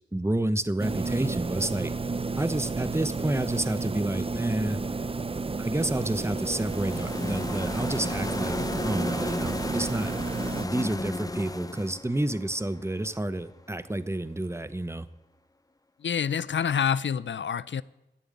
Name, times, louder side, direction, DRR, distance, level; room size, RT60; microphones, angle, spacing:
voice 1, 0.1-1.9 2.4-4.8 5.6-8.6 8.8-10.1 10.6-15.1, right 1 dB, 15° right, 0.8 m, -29 dB
sound 1, 0.8-10.7, right 3 dB, 30° right, 0.5 m, -32 dB
sound 2, 5.5-13.5, left 2 dB, 20° left, 0.5 m, -35 dB
voice 2, 16.0-17.8, left 7 dB, 75° left, 0.4 m, -27 dB
13.0 x 6.9 x 9.6 m
wide cardioid pair, 55°, 19 cm